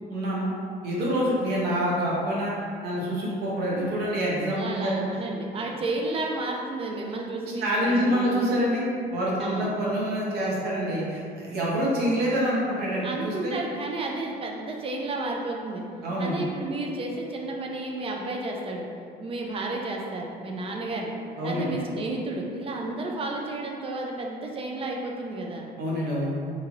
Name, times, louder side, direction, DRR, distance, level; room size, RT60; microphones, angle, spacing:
voice 1, 0.1-0.5 0.8-2.5 2.8-5.2 7.6-8.9 9.1-13.5 16.0-16.4 21.4-21.7 25.8-26.3, equal, 70° right, -5 dB, 0.8 m, -26 dB
voice 2, 4.5-8.3 9.4-9.7 13.0-15.8 16.2-18.9 19.2-21.1 21.4-25.7, right 2 dB, 35° right, -1 dB, 0.4 m, -32 dB
3.0 x 2.8 x 2.4 m, 2.4 s
cardioid pair, 110°, 17 cm